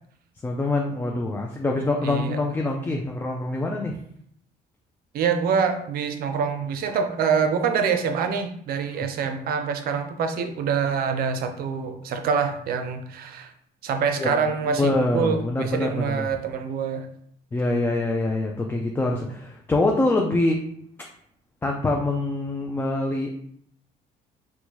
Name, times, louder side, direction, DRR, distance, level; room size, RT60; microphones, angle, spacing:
voice 1, 0.4-4.0 9.0-9.1 14.2-14.4 14.6-16.3 17.5-20.7 21.6-23.3, left 2 dB, 10° left, 0 dB, 0.4 m, -25 dB
voice 2, 2.0-2.4 5.1-13.5 13.8-17.1, right 6 dB, 60° right, 7 dB, 0.5 m, -25 dB
4.4 x 2.2 x 2.8 m, 0.66 s
cardioid pair, 110°, 17 cm